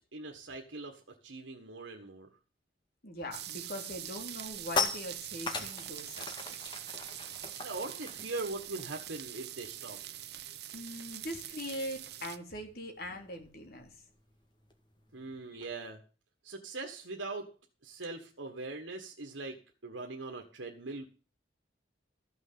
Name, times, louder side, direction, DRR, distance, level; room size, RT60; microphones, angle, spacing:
voice 1, 0.1-2.3 7.6-10.0 15.1-16.0 16.4-17.5 17.8-19.6 19.8-21.1, right 3 dB, 85° right, 2 dB, 1.6 m, -41 dB
voice 2, 3.0-6.6 10.7-14.0, equal, 55° left, 3 dB, 3.3 m, -42 dB
sound 1, 3.3-12.4, right 12 dB, 60° right, 0.9 m, -44 dB
sound 2, 4.0-9.9 10.2-10.4 10.7-15.7, left 4 dB, 25° left, 1.8 m, -40 dB
14.5 x 6.4 x 7.6 m, 0.37 s
head